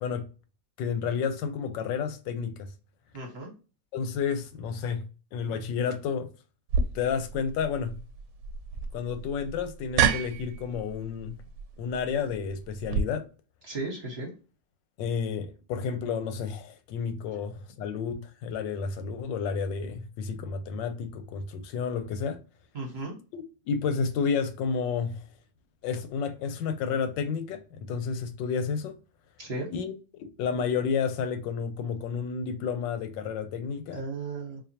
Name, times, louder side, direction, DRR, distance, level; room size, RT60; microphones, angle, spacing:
voice 1, 0.8-2.7 3.9-5.0 5.3-6.3 6.9-7.9 8.9-11.4 11.8-13.2 15.0-22.4 23.3-25.2 25.8-29.0 29.7-29.9 30.2-34.0, left 6 dB, 85° left, 1.3 m, -31 dB
voice 2, 3.1-3.5 13.6-14.3 22.7-23.1 29.4-29.7 33.9-34.6, right 2 dB, 45° right, 1.0 m, -35 dB
sound 1, 6.7-13.0, right 6 dB, 75° right, 1.2 m, -30 dB
4.2 x 2.7 x 2.8 m
omnidirectional pair, 1.9 m